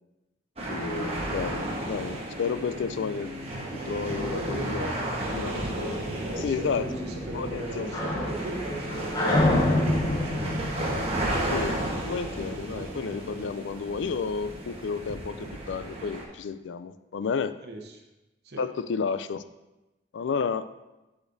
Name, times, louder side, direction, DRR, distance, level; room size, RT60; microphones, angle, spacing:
sound 1, 0.6-16.2, right 1 dB, 30° right, 1.2 m, -33 dB
voice 1, 0.7-3.3 3.9-4.9 5.3-6.9 7.3-8.0 11.4-17.5 18.6-19.4 20.1-20.7, left 5 dB, 75° left, 13 dB, 0.4 m, -31 dB
voice 2, 4.1-10.5 17.6-18.0 18.4-18.6, right 1 dB, 55° right, 2 dB, 1.0 m, -38 dB
sound 2, 6.7-12.2, left 1 dB, 20° left, 0.9 m, -27 dB
11.5 x 5.1 x 2.6 m, 1.0 s
head